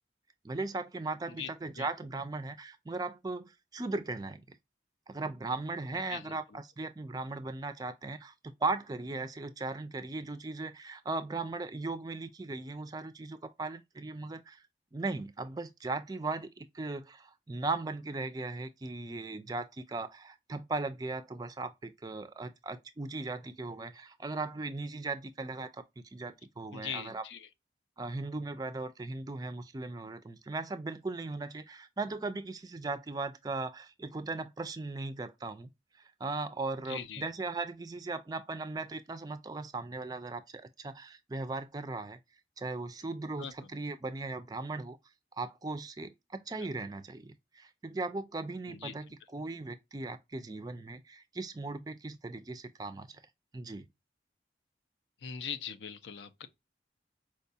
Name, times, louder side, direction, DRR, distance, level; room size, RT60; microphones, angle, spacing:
voice 1, 0.4-4.4 5.1-14.6 14.9-25.8 26.1-27.2 28.0-35.7 36.2-42.2 42.6-45.0 45.4-53.1 53.5-53.9, right 3 dB, 20° right, 0.3 m, -38 dB
voice 2, 6.1-6.6 26.7-27.5 36.9-37.2 43.4-43.5 46.6-46.7 48.7-49.0 55.2-56.5, left 7 dB, 90° left, 0.5 m, -41 dB
4.6 x 2.2 x 2.6 m
head